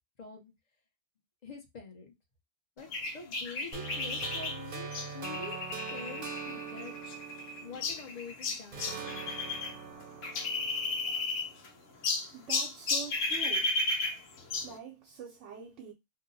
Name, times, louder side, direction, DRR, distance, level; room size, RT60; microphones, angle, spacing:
voice 1, 0.2-0.5 1.4-2.1 2.8-5.6 5.9-6.9 7.6-9.3, left 4 dB, 40° left, 0.8 m, -45 dB
sound 1, 2.9-9.7 10.0-11.7 12.0-14.8, left 3 dB, 85° left, 1.1 m, -34 dB
sound 2, 3.7-8.3 8.7-11.8, right 5 dB, 50° right, 0.8 m, -43 dB
voice 2, 12.3-13.7 14.6-15.9, right 8 dB, 75° right, 1.0 m, -44 dB
2.7 x 2.1 x 3.9 m
omnidirectional pair, 1.3 m